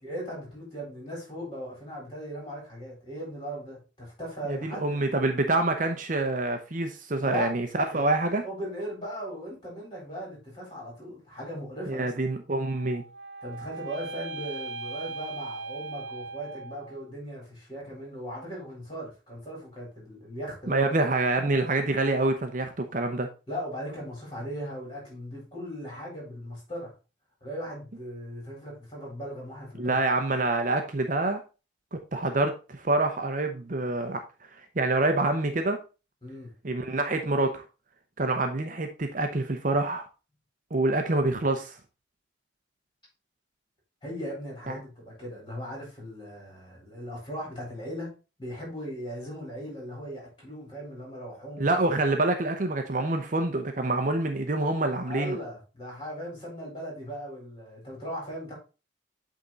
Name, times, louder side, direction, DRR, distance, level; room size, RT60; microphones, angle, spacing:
voice 1, 0.0-4.8 7.2-7.5 7.9-8.0 8.2-12.1 13.4-20.9 23.5-26.9 27.4-30.0 36.2-36.5 44.0-48.1 48.4-51.7 55.1-58.5, equal, 25° left, 4.2 m, -38 dB
voice 2, 4.5-8.4 11.9-13.0 20.7-23.3 29.8-31.4 32.1-34.2 34.8-35.8 36.6-37.6 38.2-40.0 40.7-41.8 44.7-44.8 51.6-55.4, right 2 dB, 45° right, 0.7 m, -26 dB
sound 1, 12.7-17.0, right 3 dB, 85° right, 0.8 m, -39 dB
8.4 x 3.7 x 3.9 m
head